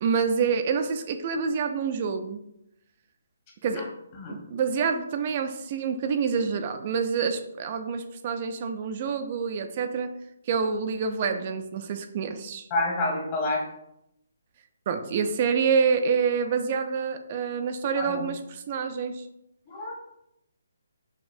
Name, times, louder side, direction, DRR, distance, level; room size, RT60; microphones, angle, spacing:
voice 1, 0.0-2.4 3.6-3.9 4.3-10.1 10.5-12.7 14.9-19.3, right 6 dB, 35° right, 7 dB, 0.3 m, -27 dB
voice 2, 12.7-13.6 17.9-18.3 19.7-19.9, left 2 dB, 30° left, -3 dB, 1.0 m, -28 dB
5.0 x 2.4 x 2.6 m, 0.81 s
hypercardioid pair, 160°, 0 cm